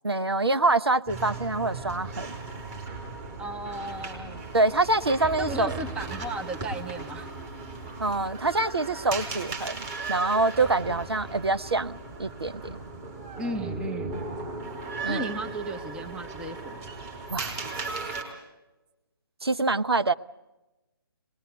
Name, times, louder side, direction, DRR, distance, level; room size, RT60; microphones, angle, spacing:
voice 1, 0.0-2.3 4.5-5.7 8.0-9.8 10.1-12.6 15.0-15.3 17.3-17.5 19.4-20.1, right 2 dB, 85° right, 12 dB, 0.9 m, -25 dB
sound 1, 1.1-18.2, right 3 dB, 25° right, 4.9 m, -37 dB
voice 2, 3.4-4.5 5.4-7.3 10.4-10.5 13.4-14.2 15.1-16.8, right 1 dB, 5° right, 5 dB, 0.9 m, -35 dB
24.5 x 21.0 x 8.1 m, 1.0 s
figure-of-eight pair, 145°, 13 cm